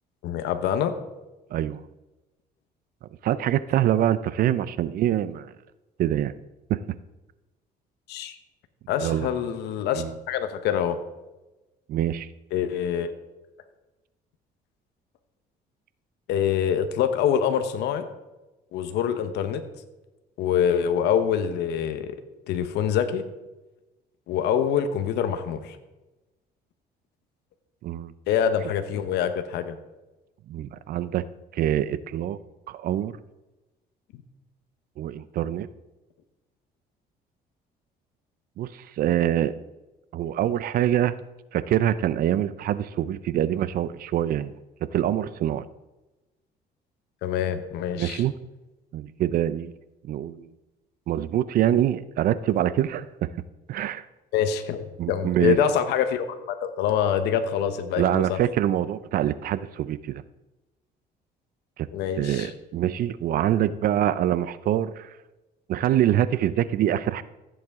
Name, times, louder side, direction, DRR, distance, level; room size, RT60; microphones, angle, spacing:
voice 1, 0.2-0.9 8.1-8.4 8.9-11.0 12.5-13.1 16.3-18.0 18.7-19.6 20.4-22.2 22.5-23.2 24.3-25.8 28.3-29.8 47.2-48.2 54.3-58.4 61.9-62.5, left 8 dB, 80° left, 9 dB, 1.0 m, -25 dB
voice 2, 3.2-5.5 6.0-6.3 6.7-6.8 9.0-9.3 10.0-10.1 11.9-12.3 27.8-28.1 30.5-31.2 31.5-32.4 32.7-33.1 35.0-35.7 38.6-39.5 40.1-41.2 41.5-44.5 44.9-45.6 48.0-48.3 48.9-49.7 50.0-50.5 51.1-53.3 53.7-54.0 55.0-55.6 58.0-60.2 61.8-61.9 62.2-65.1 65.7-67.2, right 11 dB, 60° right, 16 dB, 0.5 m, -25 dB
15.0 x 7.8 x 3.6 m, 1.1 s
cardioid pair, 110°, 17 cm